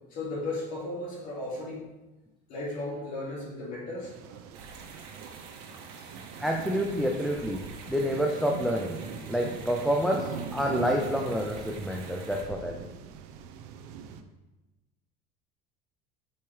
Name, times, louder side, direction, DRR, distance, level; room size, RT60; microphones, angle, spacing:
voice 1, 0.1-1.9 2.5-4.1, left 2 dB, 45° left, -4 dB, 2.2 m, -35 dB
sound 1, 4.0-14.2, right 7 dB, 85° right, 0.7 m, -41 dB
sound 2, 4.5-12.4, right 5 dB, 65° right, 1.6 m, -48 dB
voice 2, 6.4-7.6 7.9-9.0 9.3-12.9, equal, ahead, 0 dB, 0.3 m, -28 dB
8.6 x 5.5 x 3.2 m, 1.1 s
cardioid pair, 180°, 19 cm